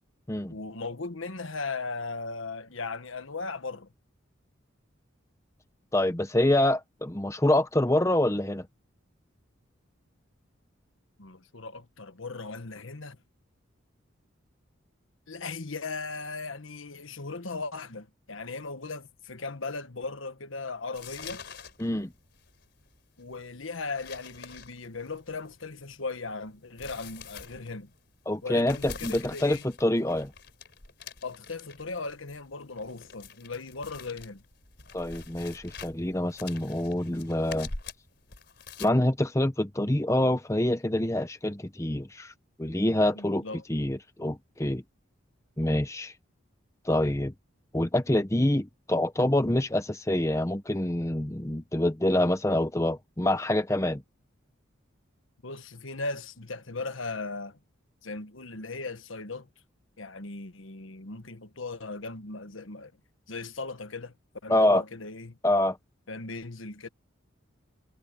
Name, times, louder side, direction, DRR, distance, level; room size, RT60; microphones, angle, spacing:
voice 1, 0.5-3.9 11.2-13.2 15.3-21.4 23.2-27.9 28.4-29.6 31.2-34.4 43.1-43.6 55.4-57.6 58.0-59.5 60.0-62.9 63.3-64.1 64.4-65.4 66.1-66.9, left 3 dB, 75° left, 1.4 m, -37 dB
voice 2, 5.9-8.7 21.8-22.1 28.3-30.3 34.9-37.7 38.8-42.3 42.6-43.4 43.7-44.8 45.6-46.1 46.8-47.3 47.7-54.0 64.5-64.8 65.4-65.8, left 1 dB, 15° left, 0.8 m, -26 dB
sound 1, 20.9-38.9, left 4 dB, 55° left, 4.7 m, -45 dB
head